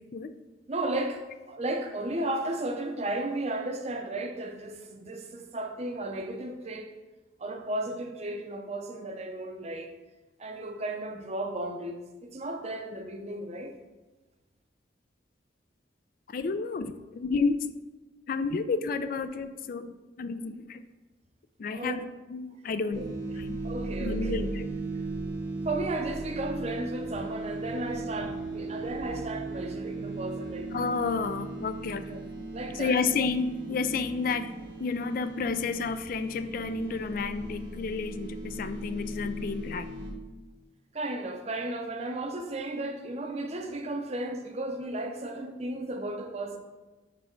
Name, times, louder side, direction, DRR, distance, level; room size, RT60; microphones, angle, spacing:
voice 1, 0.7-6.9 7.4-9.9 10.4-13.7 21.7-22.0 23.0-23.1 23.6-24.4 25.6-30.7 32.1-32.2 32.5-33.0 40.9-46.6, right 2 dB, 35° right, 4 dB, 0.6 m, -34 dB
voice 2, 16.3-17.7 18.3-19.9 20.2-20.8 21.6-23.6 24.0-24.7 30.7-32.0 32.8-34.5 34.8-39.9, left 4 dB, 50° left, 11 dB, 0.3 m, -31 dB
sound 1, 22.9-40.1, right 2 dB, 80° right, 1.1 m, -37 dB
6.7 x 3.4 x 4.4 m, 1.2 s
head